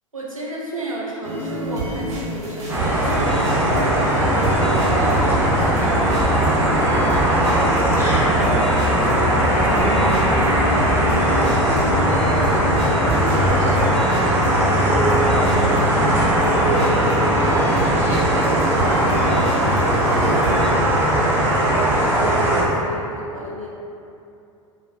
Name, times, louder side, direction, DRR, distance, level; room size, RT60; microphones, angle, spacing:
voice 1, 0.1-3.9 4.2-11.9 12.2-15.9 16.5-21.4 21.8-23.7, right 1 dB, 90° right, -4 dB, 0.5 m, -33 dB
sound 1, 1.2-20.7, right 1 dB, 60° right, 0.9 m, -28 dB
sound 2, 2.7-22.6, right 1 dB, 15° right, 0.5 m, -19 dB
sound 3, 4.1-13.2, left 2 dB, 60° left, 0.9 m, -28 dB
2.5 x 2.4 x 2.4 m, 2.6 s
figure-of-eight pair, 85°, 17 cm